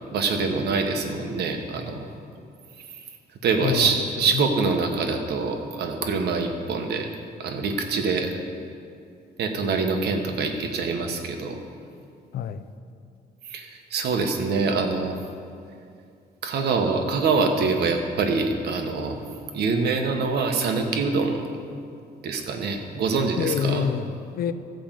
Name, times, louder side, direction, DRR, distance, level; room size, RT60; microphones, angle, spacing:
voice 1, 0.1-2.1 3.4-7.1 7.4-8.3 9.4-11.6 13.4-15.1 16.4-19.2 19.5-21.5 22.2-23.9, right 4 dB, 70° right, 4 dB, 1.3 m, -25 dB
voice 2, 3.6-4.7 12.3-12.7 23.4-24.5, left 8 dB, 60° left, 13 dB, 0.5 m, -28 dB
14.0 x 5.2 x 7.5 m, 2.4 s
cardioid pair, 150°, 17 cm